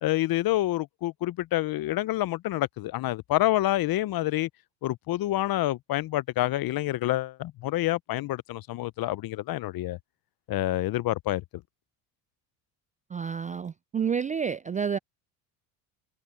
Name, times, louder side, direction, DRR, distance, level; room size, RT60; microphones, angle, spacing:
voice 1, 0.0-4.5 4.8-10.0 10.5-11.4, left 16 dB, 50° left, 0.8 m, -27 dB
voice 2, 13.1-15.0, right 7 dB, 20° right, 0.3 m, -29 dB
supercardioid pair, 80°, 46 cm